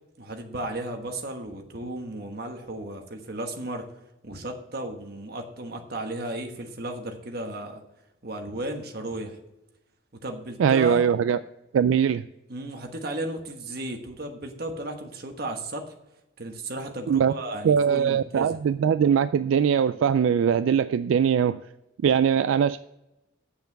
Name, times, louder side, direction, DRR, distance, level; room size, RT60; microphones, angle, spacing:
voice 1, 0.2-3.9 4.2-7.8 8.2-9.4 10.2-11.0 12.5-15.8 16.4-18.6, right 1 dB, 50° right, 4 dB, 1.3 m, -34 dB
voice 2, 10.6-11.4 11.7-12.2 17.1-17.3 17.6-21.6 22.0-22.8, right 7 dB, 75° right, 12 dB, 0.3 m, -21 dB
8.0 x 6.8 x 6.6 m, 0.90 s
head